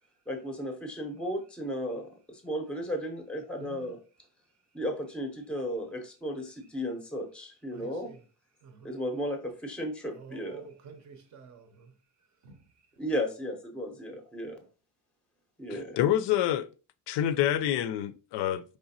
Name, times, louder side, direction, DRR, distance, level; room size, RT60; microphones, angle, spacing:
voice 1, 0.3-4.0 4.7-8.1 8.8-10.7 13.0-14.6 15.6-16.0, equal, 5° left, 0.6 m, -35 dB
voice 2, 3.6-3.9 7.7-8.2 8.6-9.0 10.1-11.9 12.4-12.9, right 5 dB, 40° right, 0.6 m, -50 dB
voice 3, 15.7-16.7 17.1-18.8, left 11 dB, 70° left, 0.5 m, -27 dB
5.0 x 3.3 x 2.7 m
cardioid pair, 170°, 43 cm